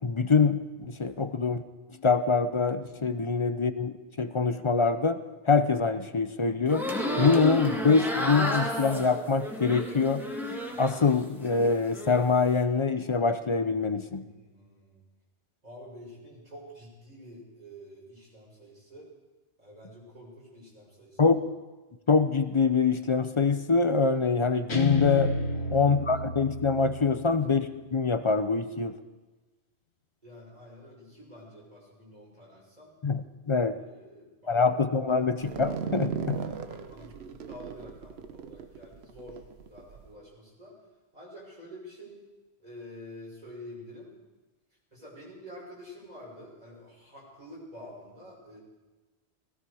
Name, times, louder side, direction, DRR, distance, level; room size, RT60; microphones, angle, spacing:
voice 1, 0.0-1.6 2.0-6.9 7.2-10.2 10.8-14.3 21.2-21.4 22.1-25.3 25.7-29.0 33.0-33.8 34.5-36.4, left 4 dB, 35° left, 10 dB, 0.6 m, -25 dB
sound 1, 6.7-11.1 11.4-12.2, equal, ahead, 1.8 m, -32 dB
voice 2, 14.2-15.0 15.6-19.1 19.6-21.4 25.5-25.9 30.2-32.9 33.9-34.6 35.1-35.2 36.3-39.4 39.7-40.7 41.1-42.2 42.6-44.1 44.9-48.6, equal, 40° right, -5 dB, 5.8 m, -48 dB
Guitar, 24.7-27.9, left 3 dB, 75° left, 1.6 m, -31 dB
sound 2, 35.4-40.1, right 6 dB, 75° right, 1.1 m, -37 dB
18.0 x 16.0 x 4.9 m, 1.2 s
omnidirectional pair, 1.1 m